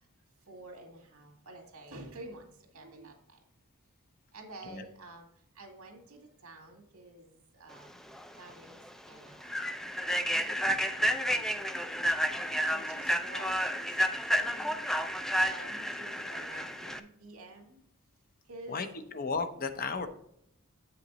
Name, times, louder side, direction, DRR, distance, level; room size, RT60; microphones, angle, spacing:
voice 1, 0.5-2.5 2.7-3.1 4.3-5.3 5.6-7.9 8.4-8.8 9.1-9.6 10.3-11.7 12.5-14.7 15.5-17.8 18.5-18.8, right 2 dB, 90° right, 3 dB, 2.0 m, -49 dB
Human voice / Train, 8.1-8.3 8.7-8.9 9.4-17.0, equal, ahead, 0.3 m, -31 dB
voice 2, 18.7-20.1, left 4 dB, 40° left, 8 dB, 0.7 m, -34 dB
8.6 x 5.8 x 3.9 m, 0.70 s
head